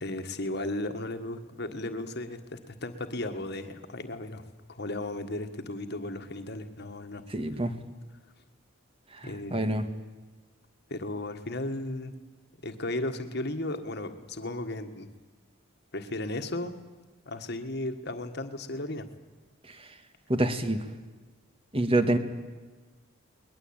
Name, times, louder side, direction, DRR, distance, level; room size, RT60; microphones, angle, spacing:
voice 1, 0.0-7.2 9.2-9.8 10.9-12.1 12.6-15.1 15.9-16.8 17.2-19.1, left 1 dB, 50° left, 7 dB, 1.7 m, -35 dB
voice 2, 7.3-7.7 9.5-9.8 20.3-20.8 21.7-22.2, right 1 dB, 25° right, 9 dB, 1.6 m, -25 dB
22.0 x 20.5 x 8.9 m, 1.3 s
head